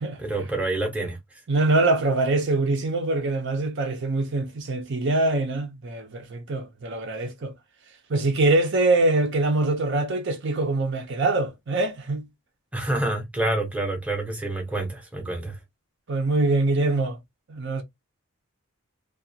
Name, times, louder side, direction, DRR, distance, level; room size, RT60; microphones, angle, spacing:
voice 1, 0.2-1.4 12.7-15.6, right 2 dB, 5° right, 0.7 m, -28 dB
voice 2, 1.5-7.5 8.1-12.3 16.1-17.2 17.5-17.8, right 2 dB, 55° right, 0.6 m, -24 dB
2.4 x 2.3 x 2.7 m
head